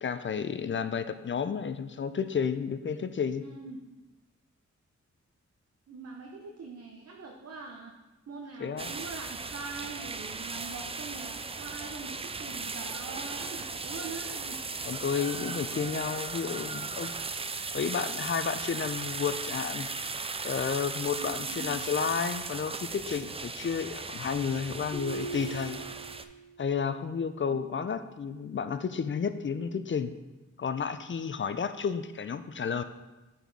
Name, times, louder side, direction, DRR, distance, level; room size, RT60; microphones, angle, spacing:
voice 1, 0.0-3.4 8.6-8.9 14.9-17.2 17.7-19.9 20.4-25.8 26.6-30.1 30.6-32.8, left 6 dB, 40° left, 11 dB, 0.5 m, -31 dB
voice 2, 3.4-3.8 5.9-8.0 8.3-14.6 21.2-21.8 27.5-27.7, right 4 dB, 55° right, 1 dB, 0.7 m, -43 dB
sound 1, 8.8-26.2, right 4 dB, 20° right, 0.4 m, -37 dB
sound 2, 24.9-26.6, right 3 dB, 20° left, 1.2 m, -39 dB
6.6 x 4.3 x 4.6 m, 1.1 s
cardioid pair, 55°, 29 cm